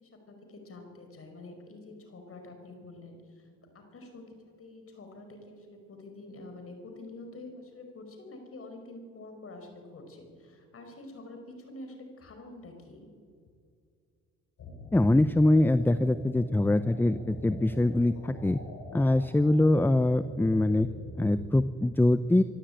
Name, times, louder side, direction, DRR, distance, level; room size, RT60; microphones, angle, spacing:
voice 1, 0.0-3.5 3.7-13.1, left 2 dB, 50° left, 4 dB, 5.4 m, -47 dB
sound 1, 14.6-21.4, left 1 dB, 65° left, 6.3 m, -44 dB
voice 2, 14.9-18.6 18.9-20.9 21.1-22.4, left 1 dB, 5° left, 13 dB, 0.6 m, -23 dB
24.5 x 13.0 x 9.0 m, 2.3 s
cardioid pair, 90°, 30 cm